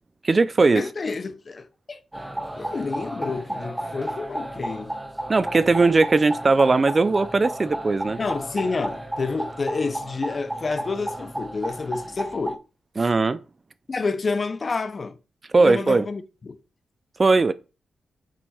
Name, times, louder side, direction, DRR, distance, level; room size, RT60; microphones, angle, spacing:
voice 1, 0.2-0.8 5.3-8.2 13.0-13.4 15.5-16.0 17.2-17.5, right 3 dB, 35° right, 0.5 m, -19 dB
voice 2, 0.7-2.0 2.6-4.9 8.2-12.6 13.9-15.2 15.6-16.6, left 4 dB, 40° left, 0.9 m, -29 dB
sound 1, 2.1-12.6, right 1 dB, 10° right, 1.0 m, -33 dB
7.8 x 4.1 x 6.3 m
cardioid pair, 100°, 0 cm